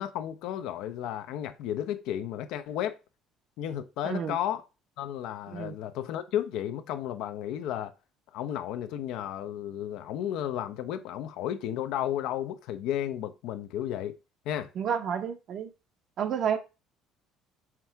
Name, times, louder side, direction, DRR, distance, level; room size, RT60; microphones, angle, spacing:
voice 1, 0.0-3.0 3.6-4.6 5.0-7.9 8.3-14.2 14.5-14.7, left 11 dB, 75° left, 0.6 m, -33 dB
voice 2, 4.0-4.3 5.5-5.7 14.8-15.7 16.2-16.6, right 8 dB, 45° right, 0.7 m, -30 dB
6.0 x 3.5 x 4.5 m
cardioid pair, 155°, 0 cm